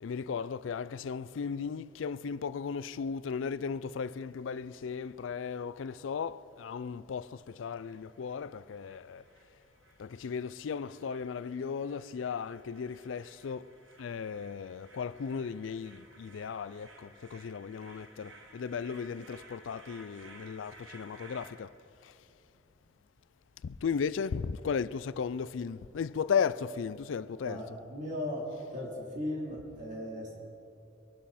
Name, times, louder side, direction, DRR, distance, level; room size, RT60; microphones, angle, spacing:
voice 1, 0.0-9.2 10.0-13.7 14.0-21.7 22.0-22.1 23.6-27.6, left 6 dB, 85° left, 0.4 m, -36 dB
sound 1, 7.7-21.5, right 2 dB, 75° right, 2.0 m, -57 dB
voice 2, 27.4-28.5 28.7-30.4, left 1 dB, 40° right, 3.6 m, -37 dB
23.0 x 11.5 x 4.2 m
head